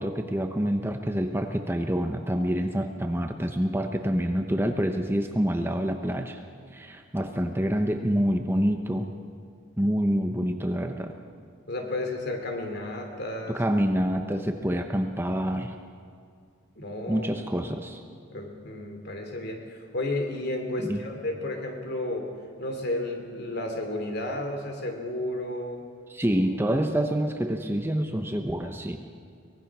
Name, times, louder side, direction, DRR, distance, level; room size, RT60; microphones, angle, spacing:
voice 1, 0.0-6.4 6.7-9.1 9.8-11.1 13.5-15.7 17.1-18.0 20.8-21.0 26.1-29.0, equal, 10° right, 5 dB, 0.9 m, -27 dB
voice 2, 11.7-13.6 16.8-17.3 18.3-22.3 22.6-25.8, left 1 dB, 50° left, 3 dB, 3.1 m, -32 dB
23.5 x 19.5 x 6.1 m, 2.2 s
head